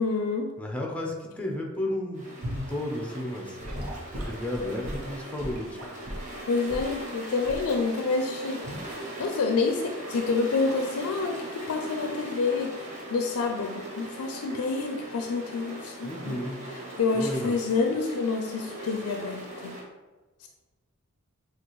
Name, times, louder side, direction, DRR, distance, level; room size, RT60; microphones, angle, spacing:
voice 1, 0.0-0.5 6.5-12.7 13.1-16.4 17.0-19.8 20.4-20.5, left 4 dB, 75° left, 3 dB, 0.4 m, -28 dB
voice 2, 0.6-3.6 4.3-5.9 16.0-16.6 17.1-17.6, left 1 dB, 5° left, 0 dB, 0.6 m, -33 dB
sound 1, 2.1-19.8, right 1 dB, 35° right, 1.3 m, -40 dB
Gurgling / Sink (filling or washing) / Liquid, 2.4-2.7 3.6-6.3 6.7-6.9 7.4-7.7 8.6-8.9, equal, 80° right, 1.0 m, -36 dB
6.6 x 2.4 x 3.1 m, 1.2 s
head